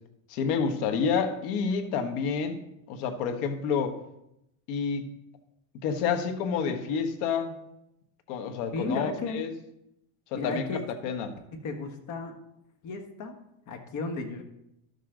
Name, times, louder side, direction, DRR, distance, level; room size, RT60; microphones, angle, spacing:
voice 1, 0.3-2.6 2.9-4.0 4.7-5.1 5.8-7.6 8.3-9.5 10.3-10.6 11.0-11.3, left 6 dB, 70° left, 6 dB, 1.5 m, -29 dB
voice 2, 8.7-9.4 10.3-10.9 11.5-12.3 12.8-13.3 13.7-14.4, left 3 dB, 40° left, 5 dB, 1.5 m, -34 dB
12.5 x 6.9 x 3.8 m, 0.82 s
supercardioid pair, 135°, 45 cm